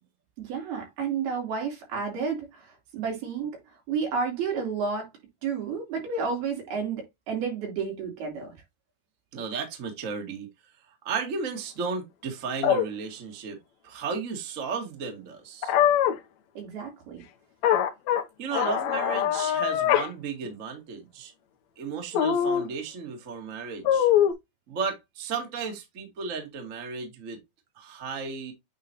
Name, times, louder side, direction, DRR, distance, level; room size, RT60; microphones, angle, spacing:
voice 1, 0.4-3.6 3.9-5.1 5.4-8.5 16.5-17.2, right 5 dB, 90° right, 5.2 m, -31 dB
voice 2, 9.3-10.5 11.0-13.6 13.8-15.7 18.4-21.3 21.8-24.1 24.7-27.4 27.8-28.5, right 5 dB, 35° right, 1.4 m, -34 dB
sound 1, 12.6-12.9 15.6-16.2 17.6-18.2 18.5-20.1 20.4-20.5 22.1-22.7 23.8-24.3, left 10 dB, 75° left, 1.7 m, -22 dB
8.8 x 4.1 x 2.9 m
omnidirectional pair, 4.2 m